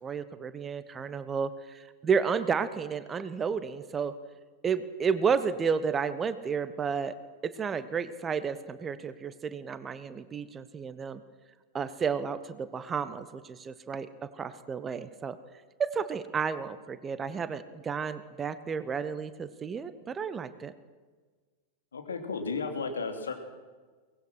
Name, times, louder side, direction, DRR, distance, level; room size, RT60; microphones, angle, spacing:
voice 1, 0.0-4.1 4.6-7.2 7.4-11.2 11.7-15.4 15.8-20.7, right 6 dB, 20° right, 13 dB, 1.1 m, -32 dB
voice 2, 21.9-23.3, left 4 dB, 70° left, 4 dB, 2.9 m, -33 dB
23.0 x 19.0 x 6.3 m, 1.4 s
figure-of-eight pair, 90°, 0 cm